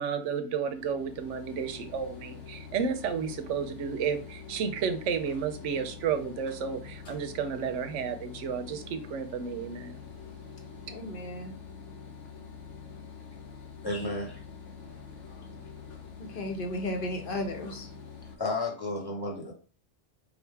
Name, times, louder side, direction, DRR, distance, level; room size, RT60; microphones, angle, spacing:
voice 1, 0.0-10.0, right 6 dB, 85° right, 8 dB, 1.0 m, -32 dB
sound 1, 0.6-18.4, left 6 dB, 75° left, 1.1 m, -46 dB
voice 2, 10.9-11.5 16.3-17.9, left 1 dB, 50° left, 3 dB, 1.0 m, -34 dB
voice 3, 13.8-14.4 14.8-15.0 15.2-15.6 18.3-19.5, left 2 dB, 20° left, -1 dB, 1.2 m, -33 dB
4.8 x 2.4 x 3.3 m, 0.37 s
omnidirectional pair, 1.2 m